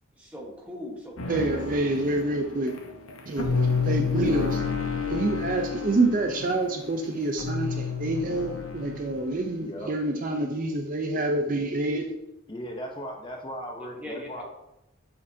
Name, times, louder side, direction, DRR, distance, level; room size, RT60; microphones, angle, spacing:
voice 1, 0.1-1.9 3.4-3.5 13.7-14.4, left 1 dB, 5° right, -2 dB, 1.1 m, -41 dB
sound 1, 1.2-9.4, left 5 dB, 85° left, 0.8 m, -30 dB
voice 2, 1.3-2.8 3.3-4.6 5.1-12.2, right 2 dB, 40° right, 4 dB, 0.5 m, -27 dB
voice 3, 12.5-14.4, equal, 20° left, 1 dB, 0.6 m, -37 dB
6.8 x 5.3 x 2.7 m, 0.88 s
head